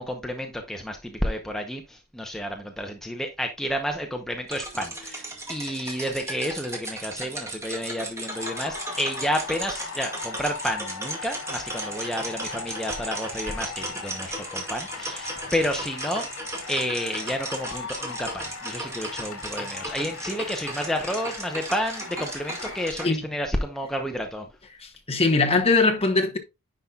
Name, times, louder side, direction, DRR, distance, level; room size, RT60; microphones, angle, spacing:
voice 1, 0.0-16.3 16.7-24.5, equal, ahead, 0.8 m, -30 dB
sound 1, 4.5-23.1, right 2 dB, 15° right, 1.9 m, -36 dB
sound 2, 8.0-22.9, left 5 dB, 65° left, 2.6 m, -39 dB
voice 2, 24.8-26.4, left 3 dB, 25° left, 1.1 m, -21 dB
10.0 x 5.4 x 2.4 m
head